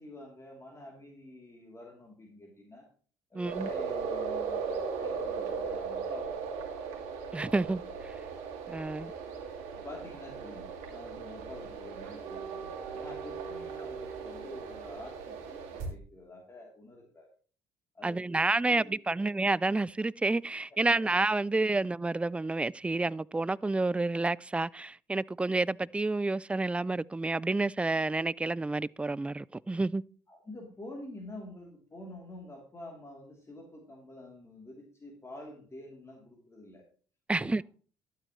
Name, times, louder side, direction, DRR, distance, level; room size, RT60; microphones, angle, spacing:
voice 1, 0.0-2.9 3.3-6.8 9.6-17.3 17.9-19.3 20.7-21.1 21.7-21.8 30.3-36.8 37.3-37.6, left 1 dB, 25° left, 3.2 m, -48 dB
voice 2, 3.3-3.7 7.3-7.8 8.7-9.1 18.0-30.0 37.3-37.6, right 2 dB, 10° right, 0.3 m, -29 dB
sound 1, 3.4-15.9, right 5 dB, 80° right, 2.3 m, -37 dB
12.0 x 9.0 x 3.1 m
supercardioid pair, 65°, 11 cm